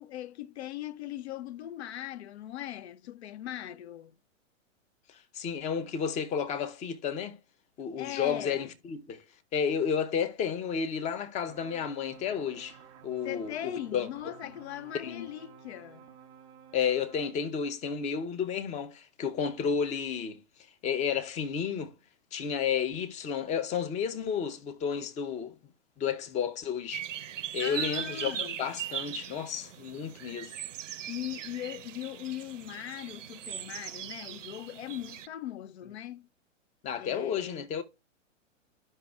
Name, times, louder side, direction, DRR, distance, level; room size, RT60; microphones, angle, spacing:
voice 1, 0.0-4.1 8.0-8.7 13.2-16.1 27.6-28.6 31.1-36.3 36.9-37.6, left 12 dB, 55° left, 0.5 m, -40 dB
voice 2, 5.1-7.4 7.8-9.2 9.5-12.8 13.0-14.3 14.9-15.3 16.7-20.4 20.8-21.9 22.3-25.6 26.0-27.1 27.5-30.5 36.8-37.8, left 7 dB, 20° left, 0.7 m, -32 dB
sound 1, 11.5-17.3, right 7 dB, 10° right, 0.4 m, -53 dB
sound 2, 26.9-35.3, right 11 dB, 70° right, 0.6 m, -39 dB
12.5 x 5.3 x 2.3 m
hypercardioid pair, 115°, 39 cm